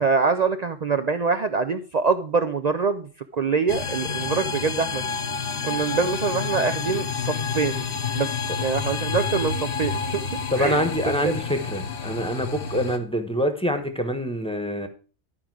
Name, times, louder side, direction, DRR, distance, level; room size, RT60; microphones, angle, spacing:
voice 1, 0.0-5.0 5.6-7.9 8.1-8.3 8.6-10.2 10.6-10.8 11.2-11.4, right 5 dB, 60° right, 9 dB, 0.4 m, -24 dB
sound 1, 3.7-13.0, left 5 dB, 50° left, 0.9 m, -29 dB
voice 2, 10.5-14.9, equal, 5° left, 7 dB, 1.0 m, -25 dB
12.0 x 5.1 x 4.7 m, 0.37 s
omnidirectional pair, 1.3 m